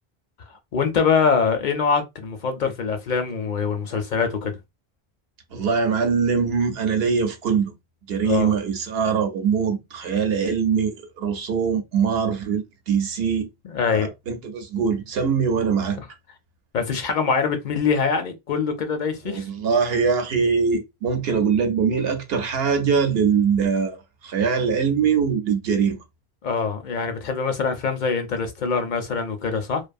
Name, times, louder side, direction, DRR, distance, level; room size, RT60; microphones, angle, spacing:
voice 1, 0.7-4.6 8.2-8.5 13.6-14.1 16.7-19.5 26.4-29.8, left 5 dB, 60° left, 0.6 m, -24 dB
voice 2, 5.5-7.7 8.1-13.5 13.9-16.0 19.2-24.0 24.2-26.0, right 6 dB, 70° right, 0.9 m, -22 dB
2.5 x 2.3 x 2.5 m
omnidirectional pair, 1.1 m